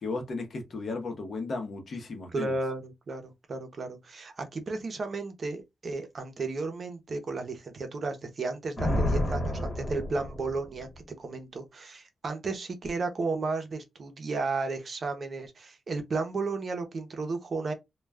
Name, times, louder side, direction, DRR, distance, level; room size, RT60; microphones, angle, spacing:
voice 1, 0.0-2.5, left 3 dB, 55° left, 0.8 m, -35 dB
voice 2, 2.3-10.9 11.2-17.7, right 3 dB, 50° right, 0.7 m, -33 dB
Thunder, 8.8-11.0, left 1 dB, 35° left, 1.1 m, -30 dB
2.3 x 2.2 x 3.3 m
wide cardioid pair, 140°, 0 cm